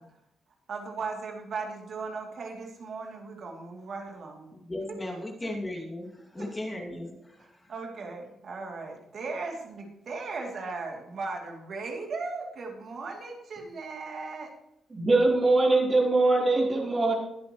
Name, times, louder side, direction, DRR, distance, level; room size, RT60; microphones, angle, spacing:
voice 1, 0.7-4.5 4.9-5.5 6.4-6.5 7.7-14.5, right 4 dB, 55° right, 1 dB, 2.7 m, -37 dB
voice 2, 4.5-7.7, left 1 dB, 20° left, -1 dB, 2.3 m, -37 dB
voice 3, 14.9-17.1, right 2 dB, 25° right, -1 dB, 3.7 m, -22 dB
21.0 x 8.2 x 3.1 m, 0.80 s
cardioid pair, 125°, 0 cm